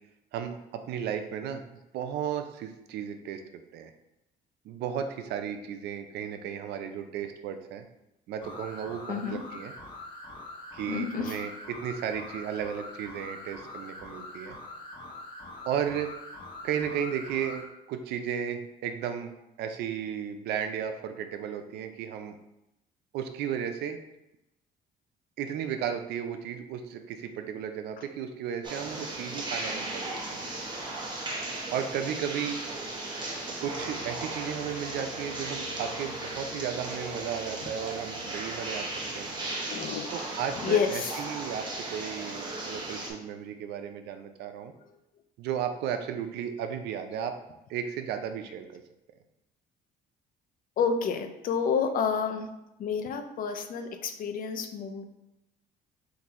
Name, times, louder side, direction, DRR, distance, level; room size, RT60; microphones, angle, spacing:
voice 1, 0.3-3.4 3.7-3.9 4.6-7.8 8.3-9.7 10.7-14.6 15.6-16.1 16.6-19.3 19.6-22.4 23.1-24.0 25.4-30.4 31.7-32.6 33.6-38.9 39.1-39.3 40.1-44.7 45.4-47.4 47.7-48.8, right 8 dB, 80° right, 7 dB, 0.5 m, -34 dB
sound 1, 8.4-17.7, left 2 dB, 30° left, 1.2 m, -44 dB
voice 2, 9.1-9.4 10.9-11.4 39.7-40.1 40.6-41.2 50.8-52.5 52.8-55.0, left 6 dB, 55° left, 7 dB, 0.5 m, -29 dB
sound 2, 28.6-43.1, right 2 dB, 25° right, 1.0 m, -36 dB
sound 3, 33.7-39.8, equal, 75° left, 1.5 m, -46 dB
3.8 x 2.6 x 4.2 m, 0.90 s
cardioid pair, 110°, 17 cm